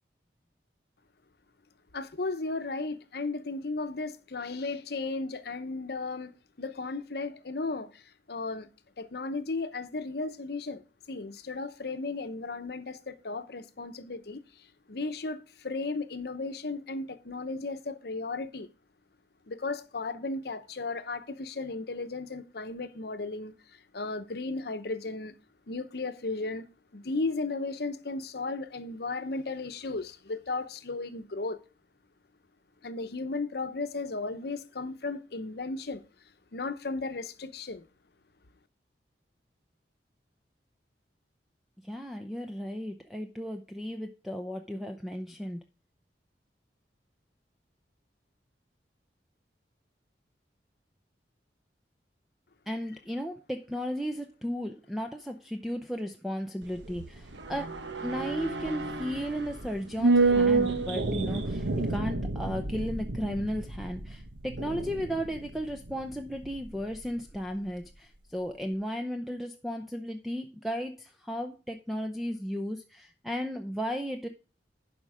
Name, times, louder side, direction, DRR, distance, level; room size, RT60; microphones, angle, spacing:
voice 1, 1.9-8.7 9.0-10.8 11.1-14.4 14.9-18.7 19.5-25.3 25.7-26.7 26.9-31.6 32.8-36.0 36.5-37.8, left 3 dB, 60° left, 0.8 m, -35 dB
voice 2, 41.8-45.6 52.7-57.7 58.0-74.3, equal, ahead, 0.6 m, -35 dB
sound 1, 56.6-67.1 67.3-67.4, right 3 dB, 90° right, 1.2 m, -30 dB
11.5 x 5.2 x 4.9 m
head